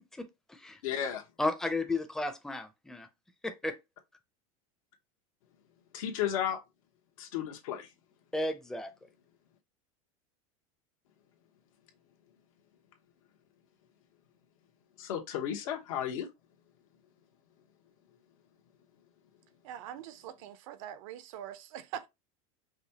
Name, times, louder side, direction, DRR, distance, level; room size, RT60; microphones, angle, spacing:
voice 1, 0.2-0.8 1.4-3.1 3.4-3.7 8.3-8.9, left 2 dB, 5° left, 0.6 m, -33 dB
voice 2, 0.8-1.2 5.9-6.6 7.2-7.9 15.0-16.3, left 9 dB, 75° left, 1.1 m, -33 dB
voice 3, 19.6-22.1, right 10 dB, 70° right, 0.6 m, -43 dB
5.0 x 2.3 x 2.8 m
supercardioid pair, 130°, 18 cm